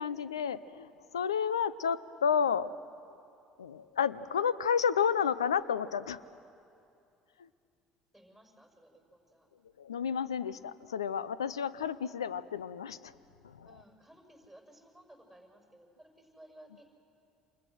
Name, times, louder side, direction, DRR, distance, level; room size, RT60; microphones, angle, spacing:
voice 1, 0.0-2.7 3.6-6.2 7.4-7.5 9.8-13.1 13.4-13.8, left 7 dB, 90° left, 17 dB, 0.6 m, -31 dB
voice 2, 8.1-9.5 13.6-16.9, right 1 dB, 5° left, 1 dB, 5.8 m, -57 dB
28.5 x 26.0 x 6.3 m, 2.6 s
hypercardioid pair, 60°, 3 cm